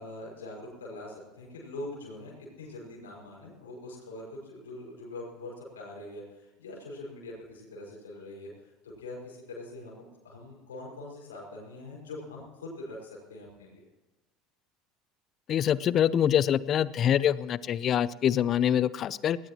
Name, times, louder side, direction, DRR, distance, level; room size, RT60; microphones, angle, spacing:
voice 1, 0.0-13.9, left 2 dB, 85° left, -3 dB, 5.7 m, -43 dB
voice 2, 15.5-19.4, left 10 dB, 45° left, 18 dB, 0.7 m, -25 dB
19.5 x 19.0 x 3.0 m, 1.1 s
hypercardioid pair, 70°, 0 cm